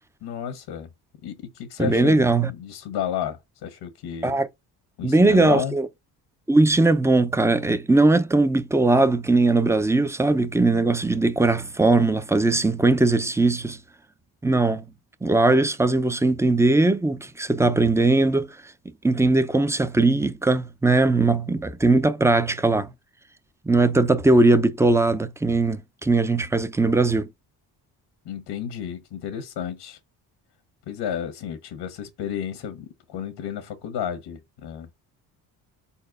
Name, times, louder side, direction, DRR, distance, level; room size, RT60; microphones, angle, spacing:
voice 1, 0.2-0.9 1.2-4.4 5.0-5.8 28.2-30.0 30.9-34.9, left 9 dB, 85° left, 1.4 m, -32 dB
voice 2, 1.8-2.5 4.2-4.5 5.0-5.9 6.5-13.8 14.4-14.8 15.2-18.6 19.0-22.9 23.7-27.3, right 2 dB, 5° right, 0.6 m, -20 dB
4.4 x 4.2 x 5.3 m
cardioid pair, 105°, 41 cm